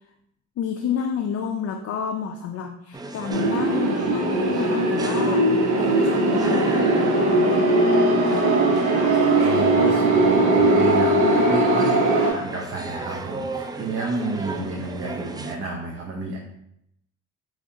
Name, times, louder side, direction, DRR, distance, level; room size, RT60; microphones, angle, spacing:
voice 1, 0.6-8.4 9.8-10.4, left 7 dB, 55° left, 4 dB, 0.5 m, -30 dB
sound 1, 2.9-15.6, right 2 dB, 15° right, 0.4 m, -35 dB
sound 2, 3.3-12.3, right 2 dB, 75° right, 1.0 m, -19 dB
voice 2, 9.4-16.4, right 3 dB, 50° right, -1 dB, 0.7 m, -30 dB
4.9 x 3.2 x 2.7 m, 0.77 s
cardioid pair, 90°, 30 cm